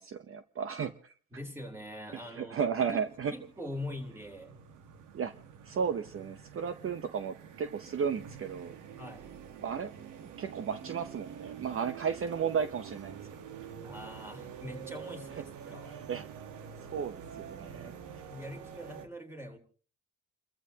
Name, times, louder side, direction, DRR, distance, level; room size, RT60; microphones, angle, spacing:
voice 1, 0.0-1.1 2.1-3.3 5.1-5.3 5.6-8.8 9.6-9.9 10.4-13.2 15.7-16.2 16.8-17.9, right 7 dB, 45° right, 10 dB, 0.9 m, -34 dB
voice 2, 1.3-2.6 2.9-3.0 3.3-4.6 9.0-9.3 13.8-16.0 18.3-19.6, left 1 dB, 10° right, 4 dB, 3.4 m, -43 dB
sound 1, 2.9-19.1, right 7 dB, 85° right, 1.4 m, -47 dB
30.0 x 14.0 x 2.9 m, 0.41 s
cardioid pair, 90°, 30 cm